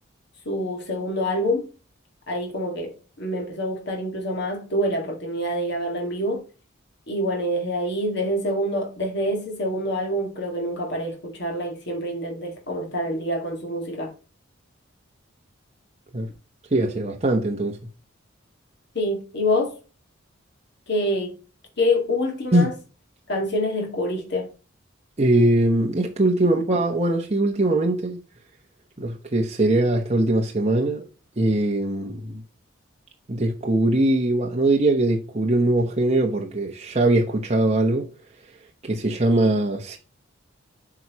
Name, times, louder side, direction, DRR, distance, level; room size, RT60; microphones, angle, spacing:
voice 1, 0.5-1.7 2.3-6.4 7.1-14.1 18.9-19.7 20.9-21.4 21.8-22.7 23.3-24.5, left 1 dB, 55° left, 2.1 m, -26 dB
voice 2, 16.7-17.8 22.5-22.7 25.2-28.2 29.0-31.0 31.4-32.4 33.3-38.1 38.8-40.0, right 1 dB, 30° right, 0.9 m, -21 dB
8.6 x 4.8 x 3.0 m
head